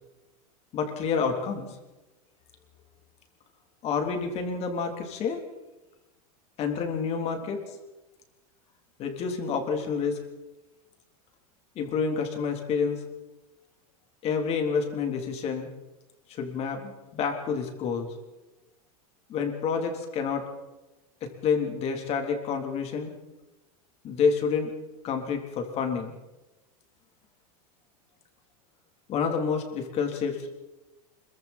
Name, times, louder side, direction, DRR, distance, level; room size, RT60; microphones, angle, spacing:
voice 1, 0.7-1.7 3.8-5.4 6.6-7.6 9.0-10.2 11.8-13.0 14.2-15.7 16.3-18.1 19.3-20.5 21.2-23.1 24.0-24.7 25.0-26.1 29.1-30.5, left 5 dB, 35° left, 3 dB, 3.6 m, -28 dB
26.0 x 23.0 x 4.4 m, 1.1 s
supercardioid pair, 140°, 19 cm